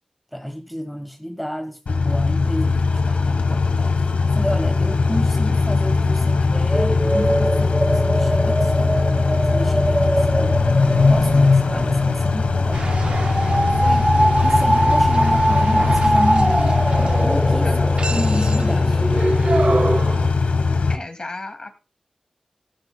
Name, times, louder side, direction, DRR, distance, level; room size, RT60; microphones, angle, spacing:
voice 1, 0.3-4.0 4.2-9.0 9.5-10.6 11.1-12.9 13.8-14.1 14.4-16.8 17.2-17.7 18.1-19.0, equal, 5° left, 1.3 m, -30 dB
Car / Idling / Accelerating revving vroom, 1.9-21.0, left 4 dB, 90° left, 1.4 m, -19 dB
sound 1, 6.7-20.0, right 1 dB, 15° right, 0.8 m, -22 dB
sound 2, 12.7-20.3, right 3 dB, 50° right, 0.5 m, -29 dB
voice 2, 17.6-18.0 20.9-21.8, left 2 dB, 40° left, 2.5 m, -34 dB
17.5 x 14.5 x 2.3 m
wide cardioid pair, 100°, 2 cm